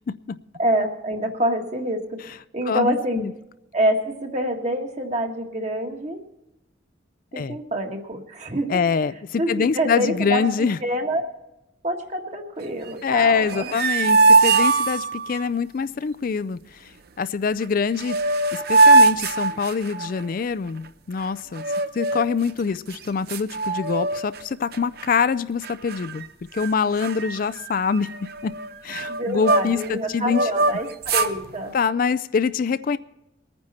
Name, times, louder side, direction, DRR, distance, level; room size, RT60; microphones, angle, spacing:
voice 1, 0.6-2.2 2.5-3.3 3.7-6.2 7.3-8.8 9.4-11.3 11.8-13.8 29.1-31.8, right 1 dB, 40° right, 3 dB, 1.7 m, -26 dB
voice 2, 2.7-3.3 7.3-7.6 8.7-10.8 13.0-16.9 17.2-18.2 18.5-21.6 21.9-26.2 26.5-28.5 28.8-30.5 31.7-33.0, left 5 dB, 45° left, 15 dB, 0.4 m, -24 dB
sound 1, 13.4-15.5 17.6-17.7 18.0-20.2 21.6-22.4 22.9-23.0 23.3-24.4 24.7-25.0 25.6-26.3 26.6-26.7 27.0-29.9 30.3-31.4, right 3 dB, 55° right, 0.7 m, -20 dB
21.5 x 9.6 x 4.2 m, 0.92 s
head